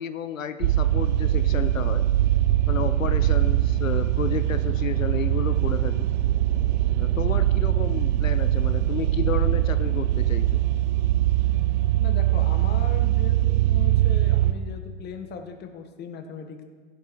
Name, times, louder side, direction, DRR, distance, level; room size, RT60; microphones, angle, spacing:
voice 1, 0.0-2.0 2.7-6.1 7.0-10.5, left 8 dB, 90° left, 10 dB, 0.9 m, -32 dB
sound 1, 0.6-14.5, right 13 dB, 60° right, 0.8 m, -22 dB
voice 2, 12.0-16.6, left 6 dB, 25° left, 5 dB, 1.7 m, -38 dB
15.5 x 12.0 x 4.7 m, 1.5 s
hypercardioid pair, 115°, 38 cm